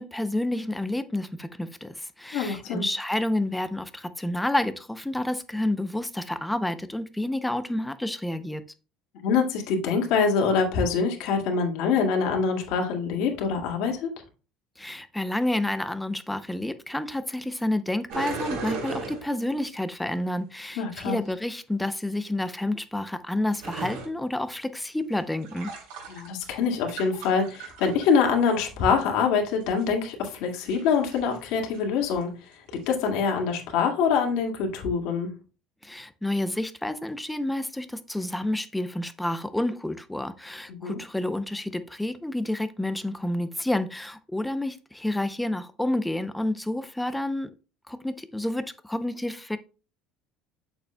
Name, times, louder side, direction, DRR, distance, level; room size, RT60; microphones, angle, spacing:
voice 1, 0.0-8.6 14.8-25.7 35.8-47.5 47.9-49.6, left 1 dB, 5° left, 0.5 m, -29 dB
voice 2, 2.3-2.9 9.2-14.1 20.8-21.2 26.1-35.3 40.7-41.0, left 5 dB, 70° left, 2.0 m, -25 dB
sound 1, 18.1-19.6 23.6-24.1 25.2-26.6 26.9-28.3 29.6-29.8 30.4-31.4 31.7-31.8 32.1-32.2 32.8-33.1, right 3 dB, 80° right, 3.4 m, -36 dB
8.2 x 6.9 x 2.2 m
cardioid pair, 150°, 0 cm